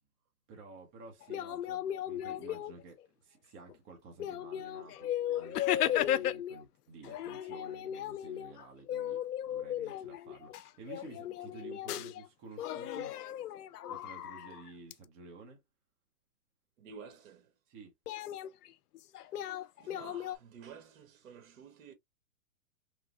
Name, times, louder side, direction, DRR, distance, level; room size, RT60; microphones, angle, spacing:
voice 1, 0.5-13.2 13.9-15.6 17.7-17.9, right 4 dB, 20° right, 0.6 m, -52 dB
sound 1, 1.2-3.0 3.7-3.8 4.2-6.6 7.0-12.3 12.6-14.9 18.1-20.4, left 11 dB, 90° left, 0.5 m, -36 dB
voice 2, 16.8-17.5 19.1-19.3 19.8-21.9, right 6 dB, 60° right, 1.1 m, -52 dB
3.1 x 2.6 x 2.3 m
hypercardioid pair, 145°, 45 cm